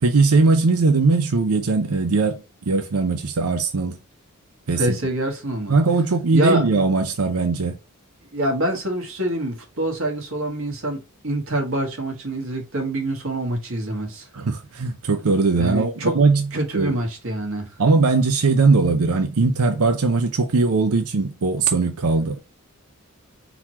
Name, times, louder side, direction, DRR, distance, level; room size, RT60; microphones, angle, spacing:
voice 1, 0.0-4.0 4.7-5.0 5.7-7.8 14.3-16.5 16.7-17.0 17.8-22.4, right 3 dB, 90° right, 0.6 m, -20 dB
voice 2, 4.7-5.8 6.3-6.6 8.3-14.3 15.5-16.1 16.5-17.7, right 1 dB, 65° right, 1.7 m, -25 dB
4.4 x 4.0 x 2.8 m
head